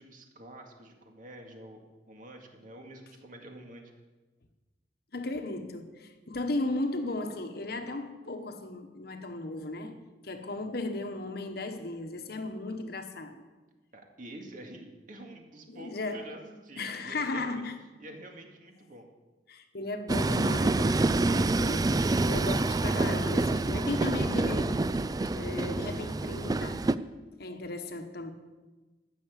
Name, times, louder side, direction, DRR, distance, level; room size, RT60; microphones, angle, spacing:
voice 1, 0.0-3.9 13.9-17.6 18.0-19.1, right 1 dB, 50° right, 2.1 m, -48 dB
voice 2, 5.1-13.4 15.7-16.3 16.8-17.8 19.5-25.0 25.3-27.0 27.4-28.3, left 2 dB, 60° left, 1.2 m, -36 dB
Train, 20.1-26.9, right 2 dB, 20° right, 0.4 m, -27 dB
14.0 x 7.0 x 8.3 m
head